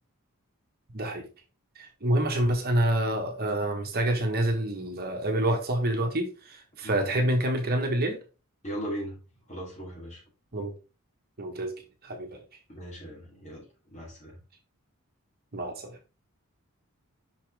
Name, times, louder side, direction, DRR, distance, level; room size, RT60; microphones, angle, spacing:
voice 1, 0.9-1.2 1.8-8.2 10.5-10.7 11.4-11.7 12.0-12.4 15.5-16.0, right 1 dB, 45° right, 1.4 m, -27 dB
voice 2, 8.6-9.2 9.5-10.2 12.7-14.4, right 1 dB, 35° left, 3.1 m, -38 dB
6.1 x 5.7 x 3.4 m
head